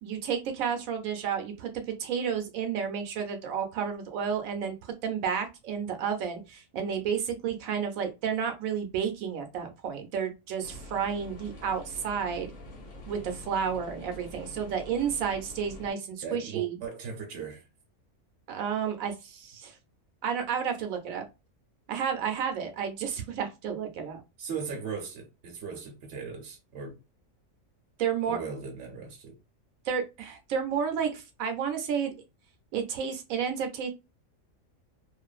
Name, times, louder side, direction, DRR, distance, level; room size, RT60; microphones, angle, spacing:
voice 1, 0.0-12.5 13.1-16.8 18.5-19.7 20.2-21.3 21.9-24.2 28.0-28.4 29.9-32.1 32.7-33.9, right 7 dB, 85° right, 1.1 m, -31 dB
sound 1, 10.6-15.9, left 2 dB, 65° left, 1.3 m, -46 dB
voice 2, 16.2-17.6 24.4-27.0 28.3-29.4, right 5 dB, 60° right, 1.0 m, -38 dB
2.6 x 2.5 x 2.3 m
omnidirectional pair, 1.4 m